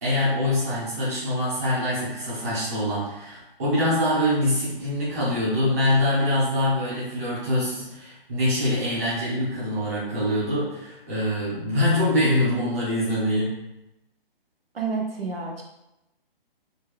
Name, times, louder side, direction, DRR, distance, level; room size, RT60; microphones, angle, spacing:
voice 1, 0.0-13.5, left 1 dB, 15° right, -10 dB, 1.3 m, -24 dB
voice 2, 14.7-15.6, right 4 dB, 75° right, 0 dB, 1.0 m, -29 dB
4.4 x 3.0 x 3.3 m, 0.90 s
hypercardioid pair, 175°, 30 cm